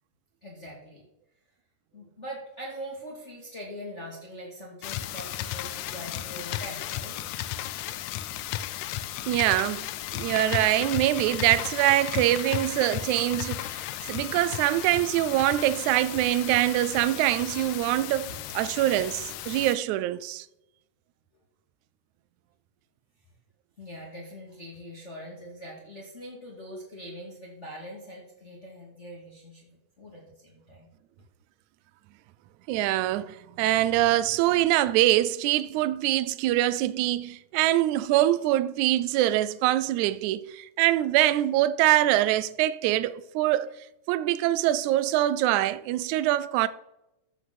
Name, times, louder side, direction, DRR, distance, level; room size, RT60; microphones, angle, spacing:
voice 1, 0.4-1.0 1.9-7.2 18.3-18.4 23.8-30.9, equal, 25° left, 2.2 m, -42 dB
sound 1, 4.8-19.8, left 13 dB, 80° left, 1.7 m, -35 dB
voice 2, 9.3-9.9 10.1-20.5 32.7-43.7 44.1-46.7, right 14 dB, 80° right, 1.9 m, -24 dB
14.0 x 5.9 x 6.1 m
omnidirectional pair, 3.6 m